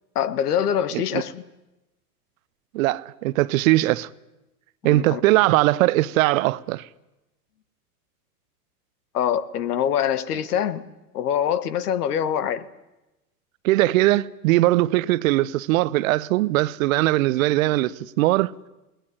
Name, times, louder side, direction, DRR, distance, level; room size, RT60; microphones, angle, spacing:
voice 1, 0.1-1.4 4.9-5.2 9.1-10.8 11.1-12.6, left 9 dB, 75° left, 1.5 m, -24 dB
voice 2, 2.7-4.1 4.8-6.8 13.6-18.5, right 17 dB, 60° right, 0.8 m, -20 dB
19.5 x 18.5 x 10.0 m
hypercardioid pair, 100°, 47 cm